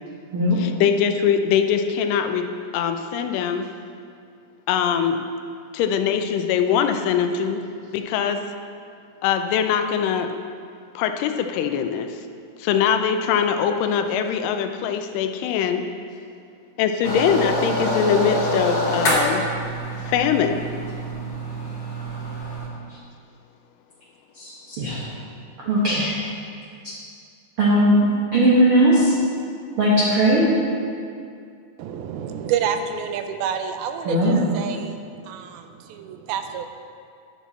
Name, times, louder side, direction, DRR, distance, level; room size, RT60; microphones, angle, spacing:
voice 1, 0.6-3.7 4.7-5.2 5.7-7.6 7.9-8.4 9.2-10.3 11.0-12.1 12.6-15.8 16.8-19.4 20.0-20.6, left 8 dB, 85° left, 7 dB, 1.9 m, -22 dB
sound 1, 17.0-22.7, equal, 55° left, 1.1 m, -25 dB
voice 2, 24.3-25.1 25.6-26.1 27.6-27.9 28.3-29.1 29.8-30.5 34.0-34.4, right 1 dB, 65° right, -7 dB, 1.3 m, -18 dB
voice 3, 31.8-35.0 35.3-36.7, right 8 dB, 80° right, 7 dB, 2.4 m, -28 dB
11.0 x 7.2 x 4.1 m, 2.3 s
omnidirectional pair, 4.5 m